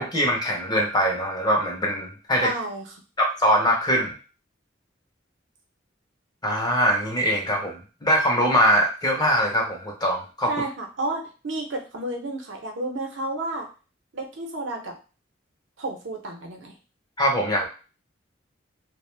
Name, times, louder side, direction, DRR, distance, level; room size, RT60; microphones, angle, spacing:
voice 1, 0.0-2.5 3.2-4.1 6.4-10.5 17.2-17.7, equal, 20° left, 0 dB, 0.6 m, -22 dB
voice 2, 2.4-2.8 10.5-13.7 14.1-14.9 15.8-16.8, right 2 dB, 75° right, 2 dB, 0.6 m, -31 dB
2.4 x 2.0 x 3.1 m, 0.34 s
head